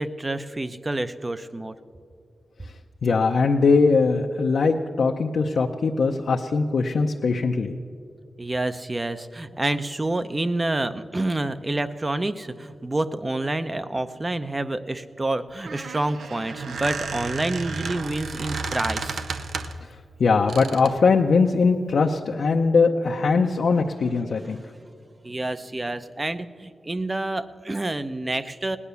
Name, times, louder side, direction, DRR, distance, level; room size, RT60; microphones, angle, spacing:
voice 1, 0.0-1.8 8.4-19.2 24.4-24.7 25.2-28.8, right 2 dB, 25° right, 11 dB, 0.6 m, -28 dB
voice 2, 3.0-7.8 20.2-24.6, left 4 dB, 70° left, 1 dB, 0.6 m, -21 dB
Squeak, 15.5-19.9 20.5-21.0, right 4 dB, 85° right, 0.7 m, -32 dB
18.5 x 9.8 x 6.9 m, 2.2 s
wide cardioid pair, 85°, 0 cm